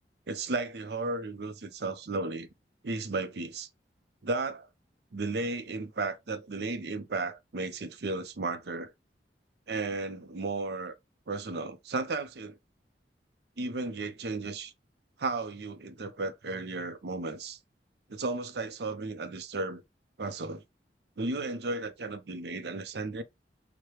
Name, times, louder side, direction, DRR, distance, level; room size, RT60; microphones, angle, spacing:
voice 1, 0.3-2.5 2.8-3.7 4.2-4.7 5.1-8.9 9.7-11.0 11.3-12.6 13.6-14.7 15.2-17.6 18.1-19.8 20.2-20.6 21.2-23.2, right 3 dB, 70° right, 0.6 m, -34 dB
4.8 x 2.2 x 2.9 m
head